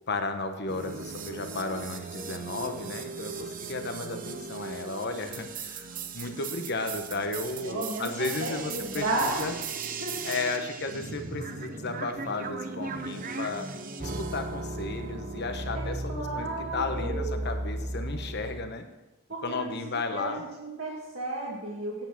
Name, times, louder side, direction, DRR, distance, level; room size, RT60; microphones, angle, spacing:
voice 1, 0.1-9.6 10.2-13.7 14.0-16.5 16.7-18.8 19.4-20.4, left 3 dB, 55° left, 7 dB, 1.1 m, -34 dB
sound 1, 0.7-18.7, right 3 dB, 40° right, 0.8 m, -37 dB
voice 2, 7.6-9.5 10.0-10.1 15.7-15.8 16.1-17.4 19.3-22.1, right 2 dB, 65° right, -6 dB, 2.4 m, -33 dB
9.0 x 8.2 x 6.0 m, 1.0 s
head